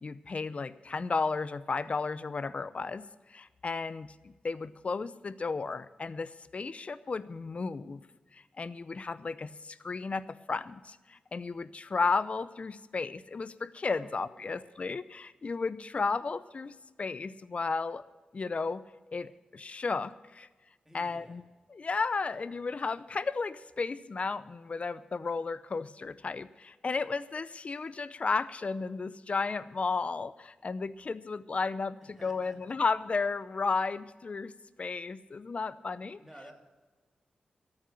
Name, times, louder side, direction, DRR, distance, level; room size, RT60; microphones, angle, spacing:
voice 1, 0.0-3.0 3.3-8.1 8.3-18.0 18.3-18.8 19.1-20.5 20.9-21.4 21.7-34.5 34.8-36.2, left 4 dB, 45° left, 16 dB, 0.6 m, -33 dB
voice 2, 13.9-14.6 20.8-21.4 32.0-32.7 36.2-36.5, equal, 10° right, 1 dB, 2.8 m, -53 dB
13.5 x 9.0 x 7.4 m, 1.2 s
wide cardioid pair, 85°, 3 cm